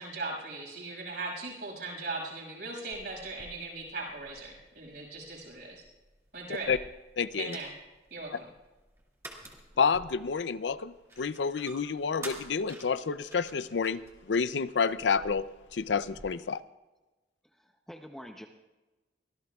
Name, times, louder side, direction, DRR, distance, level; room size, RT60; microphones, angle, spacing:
voice 1, 0.0-5.8 6.3-6.7 7.4-7.7 8.1-8.5, right 3 dB, 65° right, -1 dB, 6.3 m, -39 dB
sound 1, 2.9-16.2, right 1 dB, 15° right, 2.2 m, -51 dB
voice 2, 7.2-7.6 9.8-14.0 14.3-15.4 15.7-16.6, left 5 dB, 85° left, 14 dB, 0.5 m, -29 dB
voice 3, 17.5-18.5, equal, ahead, 3 dB, 0.7 m, -46 dB
24.5 x 16.0 x 2.4 m, 1.1 s
head